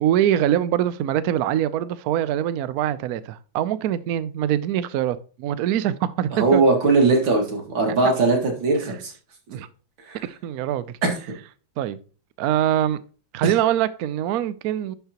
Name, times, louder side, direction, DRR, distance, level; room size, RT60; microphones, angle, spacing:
voice 1, 0.0-6.6 8.0-8.1 9.5-9.7 10.2-11.0 11.8-12.0 12.4-13.0 13.3-14.9, right 11 dB, 90° right, 0.8 m, -23 dB
voice 2, 6.3-9.1 10.1-10.2 11.0-11.1 13.4-13.5, right 3 dB, 70° right, 2.7 m, -20 dB
11.0 x 5.6 x 2.9 m
omnidirectional pair, 2.2 m